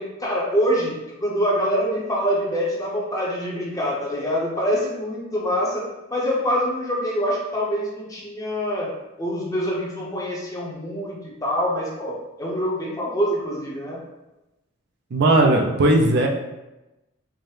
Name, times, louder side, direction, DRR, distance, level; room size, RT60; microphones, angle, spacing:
voice 1, 0.0-5.8 6.1-8.9 9.2-14.0, equal, 15° left, -4 dB, 0.7 m, -25 dB
voice 2, 15.1-16.3, right 2 dB, 50° right, 1 dB, 0.4 m, -17 dB
4.5 x 2.1 x 3.1 m, 0.99 s
head